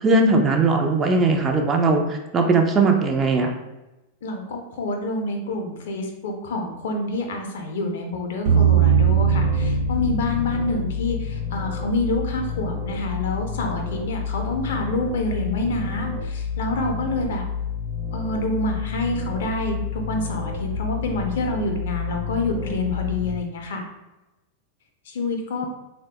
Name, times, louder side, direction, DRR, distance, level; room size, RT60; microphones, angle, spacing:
voice 1, 0.0-3.5, right 3 dB, 20° right, 2 dB, 0.4 m, -19 dB
voice 2, 4.2-17.4 18.1-23.8 25.1-25.7, left 2 dB, 60° left, 3 dB, 0.5 m, -27 dB
sound 1, 8.5-11.6, right 7 dB, 55° right, 0.7 m, -20 dB
sound 2, 8.9-23.3, left 6 dB, 80° right, 0.8 m, -30 dB
3.3 x 2.1 x 2.8 m, 1.0 s
figure-of-eight pair, 90°, 0 cm